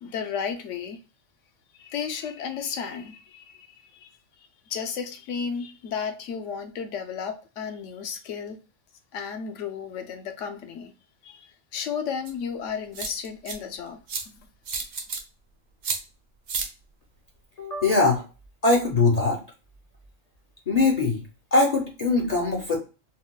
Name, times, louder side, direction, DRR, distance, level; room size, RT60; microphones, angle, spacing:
voice 1, 0.0-1.0 1.8-4.1 4.4-8.6 9.1-10.9 11.2-14.0 14.3-14.4, left 6 dB, 70° left, 0.9 m, -33 dB
sound 1, 12.3-12.4 12.9-13.5 14.1-14.2 14.7-15.2 15.8-16.0 16.5-16.7, right 4 dB, 55° right, 0.5 m, -30 dB
voice 2, 17.6-18.2 18.6-19.4 20.7-21.2 21.5-22.8, left 3 dB, 45° left, 0.5 m, -21 dB
3.9 x 2.2 x 2.2 m
omnidirectional pair, 1.4 m